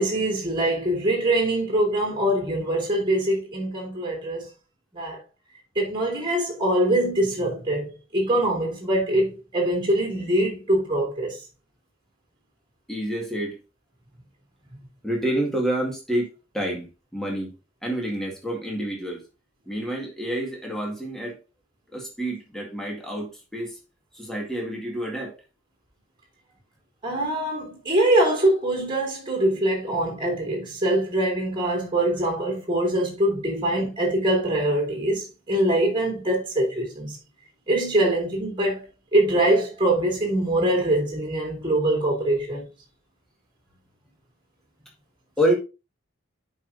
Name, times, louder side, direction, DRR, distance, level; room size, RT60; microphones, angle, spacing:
voice 1, 0.0-4.5 4.9-5.2 5.8-11.4 27.0-37.2 37.7-38.8 39.1-42.7, right 1 dB, 20° right, 2.2 m, -23 dB
voice 2, 12.9-13.6 15.0-16.9 17.1-17.5 17.8-19.2 19.7-21.4 21.9-23.8 24.1-25.4 45.4-45.5, right 1 dB, ahead, 1.8 m, -28 dB
10.5 x 4.9 x 2.6 m
head